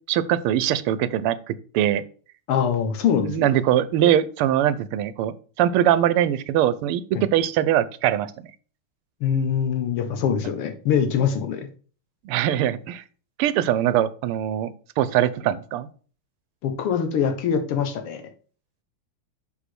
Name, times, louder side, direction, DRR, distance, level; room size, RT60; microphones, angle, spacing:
voice 1, 0.1-2.0 3.2-8.3 12.2-13.0 13.4-15.9, right 11 dB, 85° right, 16 dB, 1.5 m, -22 dB
voice 2, 2.5-3.5 7.1-7.2 9.2-11.7 16.6-18.2, left 7 dB, 85° left, 6 dB, 2.1 m, -23 dB
6.0 x 5.6 x 6.1 m, 0.41 s
omnidirectional pair, 2.4 m